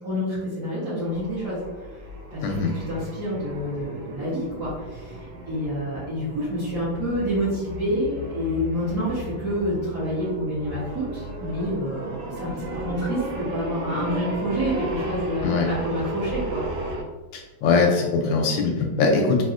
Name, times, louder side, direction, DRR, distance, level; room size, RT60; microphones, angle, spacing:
voice 1, 0.0-1.9 2.3-16.6, equal, 50° right, -12 dB, 1.6 m, -28 dB
sound 1, 1.0-17.0, right 1 dB, 75° right, 1.2 m, -35 dB
voice 2, 17.3-19.4, left 4 dB, 75° left, 1 dB, 1.1 m, -21 dB
4.1 x 2.2 x 2.4 m, 1.2 s
omnidirectional pair, 2.4 m